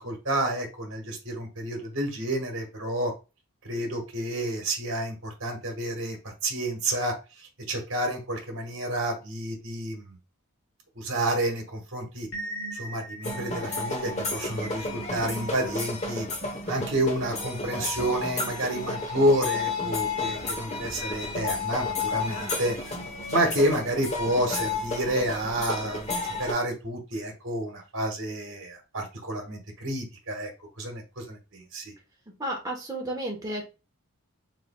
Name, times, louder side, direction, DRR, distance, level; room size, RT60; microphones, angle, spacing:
voice 1, 0.0-3.1 3.6-6.2 6.4-7.1 7.7-10.2 11.0-12.3 12.8-16.3 16.7-22.8 23.3-30.5 30.8-31.9, right 1 dB, 55° right, 3 dB, 1.3 m, -29 dB
sound 1, 12.3-24.0, right 2 dB, 55° left, 0.7 m, -45 dB
sound 2, 13.2-26.5, left 3 dB, 30° left, 1.0 m, -32 dB
voice 2, 32.4-33.7, right 1 dB, 15° right, 0 dB, 1.1 m, -32 dB
4.9 x 3.9 x 2.3 m, 0.29 s
head